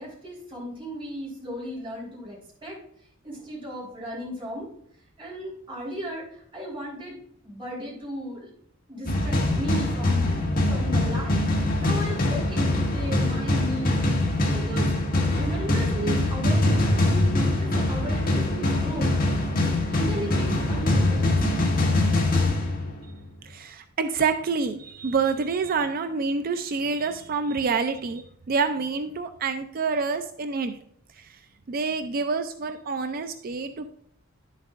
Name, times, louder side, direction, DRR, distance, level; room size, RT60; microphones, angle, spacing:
voice 1, 0.0-2.8 3.2-4.7 5.2-7.2 7.4-8.5 8.9-10.3 10.7-11.4 11.8-14.9 15.3-19.4 19.9-22.0, equal, 25° right, -6 dB, 3.7 m, -36 dB
sound 1, 9.1-23.2, left 2 dB, 45° left, 1.7 m, -23 dB
voice 2, 23.4-30.8 31.2-31.4 31.7-33.9, right 4 dB, 45° right, 9 dB, 0.4 m, -27 dB
10.5 x 7.2 x 2.5 m, 0.68 s
head